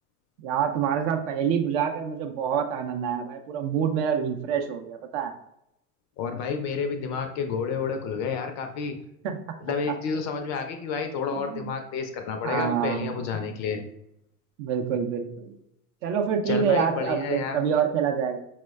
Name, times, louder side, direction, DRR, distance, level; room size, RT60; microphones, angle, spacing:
voice 1, 0.4-5.3 9.2-9.4 11.3-11.7 12.4-13.5 14.6-15.5 16.0-18.4, right 7 dB, 55° right, 6 dB, 0.5 m, -27 dB
voice 2, 6.2-9.0 9.6-13.8 16.5-17.6, left 5 dB, 40° left, 6 dB, 0.4 m, -30 dB
4.3 x 2.1 x 2.2 m, 0.79 s
hypercardioid pair, 80°, 46 cm